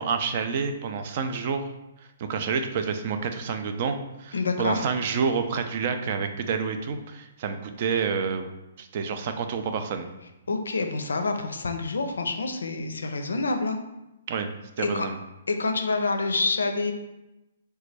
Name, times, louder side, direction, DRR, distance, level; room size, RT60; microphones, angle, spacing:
voice 1, 0.0-1.6 2.2-8.4 8.8-10.1 14.3-14.5 14.8-15.1, right 5 dB, 45° right, 7 dB, 0.4 m, -28 dB
voice 2, 4.3-4.8 10.5-13.8 14.8-15.1 15.5-16.9, left 3 dB, 75° left, 6 dB, 0.4 m, -27 dB
3.9 x 2.2 x 3.2 m, 0.95 s
figure-of-eight pair, 130°, 0 cm